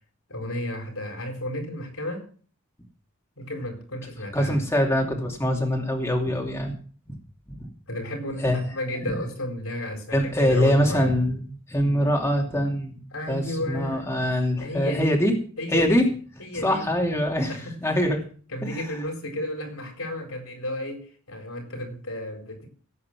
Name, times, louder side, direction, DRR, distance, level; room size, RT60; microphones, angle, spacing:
voice 1, 0.3-2.3 3.4-4.6 7.9-11.1 13.1-14.1 14.6-15.2 15.6-16.0 16.4-16.8 17.5-17.7 18.5-22.7, left 1 dB, 75° left, 4.2 m, -33 dB
voice 2, 4.3-6.7 7.5-7.7 8.4-8.6 10.1-11.4 11.7-12.9 13.3-15.3 15.7-16.0 16.5-18.2 18.6-18.8, equal, 15° left, 2.7 m, -23 dB
17.0 x 8.5 x 6.0 m
head